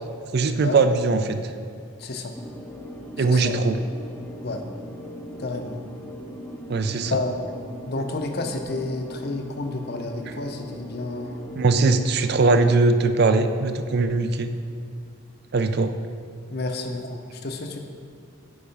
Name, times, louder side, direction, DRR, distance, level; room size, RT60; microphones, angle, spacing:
voice 1, 0.3-1.4 3.2-3.8 6.7-7.2 11.6-14.5 15.5-15.9, right 3 dB, 50° right, 9 dB, 0.4 m, -20 dB
voice 2, 2.0-2.3 3.2-3.7 4.4-4.6 5.4-5.8 7.1-7.6 7.8-11.5 16.5-17.8, left 2 dB, 50° left, 5 dB, 0.6 m, -30 dB
sound 1, 2.3-12.7, equal, 5° left, 0.5 m, -40 dB
8.7 x 4.8 x 5.2 m, 2.3 s
head